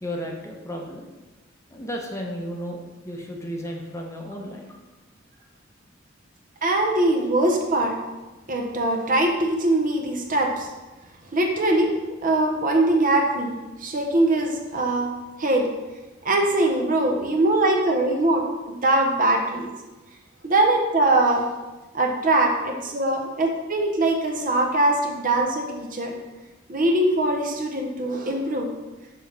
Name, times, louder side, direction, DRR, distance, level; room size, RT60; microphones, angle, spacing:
voice 1, 0.0-1.1 1.7-4.8, equal, 15° left, 0 dB, 0.7 m, -34 dB
voice 2, 6.6-8.0 8.5-10.7 11.3-11.9 12.2-15.1 15.4-15.7 16.2-19.7 20.4-21.5 21.9-26.1 26.7-28.7, right 2 dB, 45° right, 2 dB, 0.8 m, -22 dB
6.2 x 3.1 x 5.5 m, 1.1 s
head